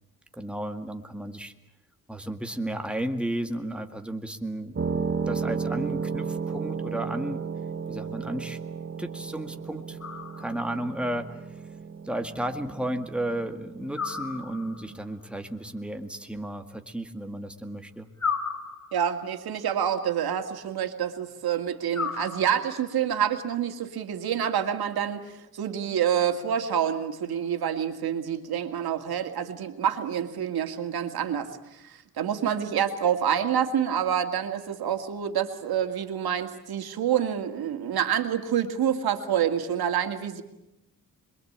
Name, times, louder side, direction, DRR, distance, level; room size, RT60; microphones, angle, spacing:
voice 1, 0.3-1.5 2.1-7.4 7.9-8.6 9.0-10.0 10.4-11.6 12.0-18.1, right 1 dB, 5° right, 6 dB, 2.0 m, -33 dB
sound 1, 4.8-15.0, right 5 dB, 35° right, 1.5 m, -34 dB
sound 2, 10.0-10.8 13.9-15.0 18.2-19.3 21.9-22.9, left 5 dB, 50° left, 3.3 m, -34 dB
voice 2, 18.9-40.4, right 9 dB, 90° right, 6 dB, 2.3 m, -27 dB
26.5 x 22.5 x 8.8 m, 0.89 s
cardioid pair, 100°, 36 cm